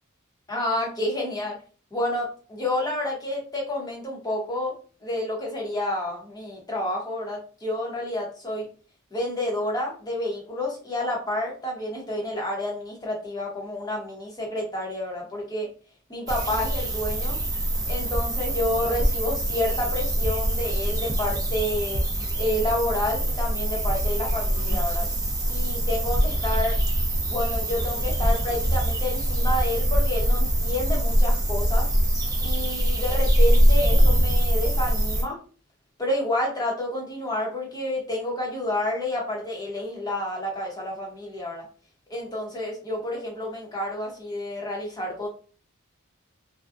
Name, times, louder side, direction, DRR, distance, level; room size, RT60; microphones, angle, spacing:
voice 1, 0.5-1.6 1.9-4.7 5.0-8.7 9.1-15.7 16.1-17.4 17.9-22.0 22.4-25.1 25.5-26.8 27.3-31.9 32.4-35.4 36.0-41.6 42.1-45.3, left 1 dB, 20° left, -2 dB, 0.9 m, -29 dB
sound 1, 16.3-35.2, equal, 15° right, 0.5 m, -23 dB
2.5 x 2.2 x 2.4 m, 0.38 s
head